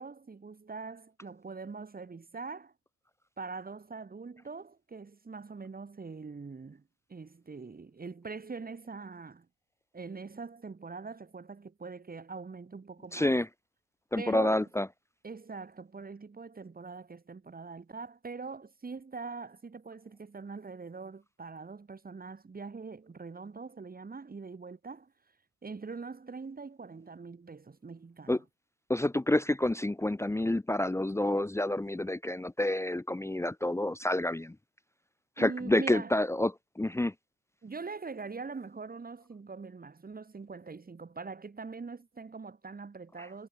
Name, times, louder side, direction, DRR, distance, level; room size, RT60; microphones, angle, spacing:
voice 1, 0.0-2.7 3.4-6.8 7.1-9.5 9.9-13.4 14.2-14.6 15.2-25.1 25.6-28.4 35.4-36.2 37.6-43.5, right 4 dB, 30° right, 4.5 m, -43 dB
voice 2, 13.1-13.5 14.1-14.9 28.3-28.4 28.9-34.5 35.4-37.1, left 1 dB, 10° left, 0.9 m, -28 dB
cardioid pair, 90°, 30 cm